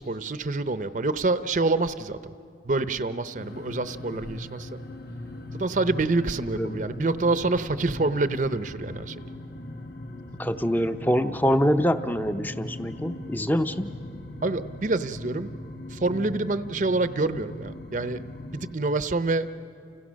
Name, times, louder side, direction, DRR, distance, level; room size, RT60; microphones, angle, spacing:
voice 1, 0.0-2.3 2.6-4.8 5.5-9.2 14.4-15.5 15.9-18.2 18.5-19.5, right 3 dB, 45° right, 12 dB, 0.7 m, -27 dB
sound 1, 3.4-18.8, left 1 dB, 60° left, 1.5 m, -39 dB
voice 2, 10.4-13.9, equal, 10° left, 9 dB, 0.6 m, -25 dB
29.5 x 29.5 x 6.3 m, 2.5 s
head